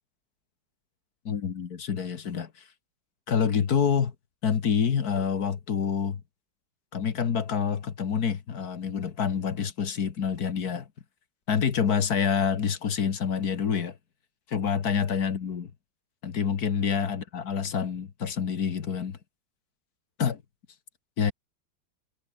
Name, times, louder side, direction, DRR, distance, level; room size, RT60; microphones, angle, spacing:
voice 1, 1.3-2.5 3.3-4.1 4.4-6.2 6.9-10.9 11.5-14.0 14.5-15.7 16.2-19.2 20.2-20.4 21.2-21.3, left 7 dB, 50° left, 1.9 m, -27 dB
omnidirectional pair, 2.2 m